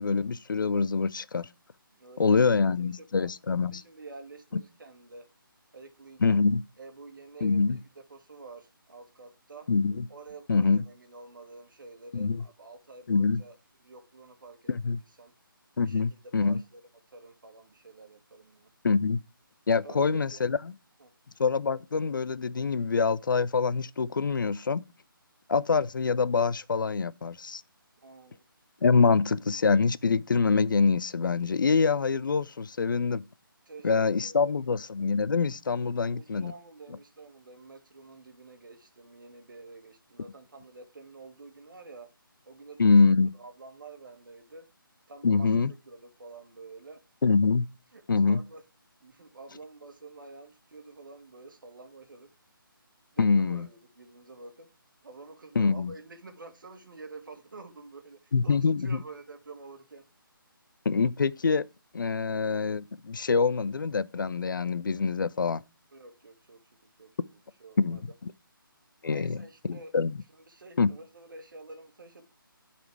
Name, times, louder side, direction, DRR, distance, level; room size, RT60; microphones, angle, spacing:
voice 1, 0.0-1.5 2.2-3.8 6.2-6.6 7.4-7.8 9.7-10.0 10.5-10.8 12.1-12.4 13.1-13.4 14.7-15.0 15.8-16.6 18.8-19.2 19.7-20.6 21.4-24.8 25.5-27.6 28.8-33.2 33.8-36.5 42.8-43.3 45.2-45.7 47.2-47.7 48.1-48.4 53.2-53.7 55.6-55.9 58.3-58.9 60.9-61.6 61.9-65.6 67.8-68.0 69.0-69.4 69.7-70.1 70.8-70.9, left 4 dB, 60° left, 0.4 m, -25 dB
voice 2, 1.9-5.3 5.7-6.4 6.8-9.7 10.1-15.3 15.8-16.8 17.1-18.7 19.8-20.4 21.0-21.1 28.0-28.4 33.6-34.7 36.1-42.1 42.4-44.7 45.1-47.0 47.9-48.6 49.0-52.3 53.1-54.7 55.0-60.1 65.9-68.0 69.0-69.9 70.3-72.3, right 3 dB, 60° right, 1.5 m, -49 dB
10.5 x 4.2 x 4.6 m
figure-of-eight pair, 150°, 12 cm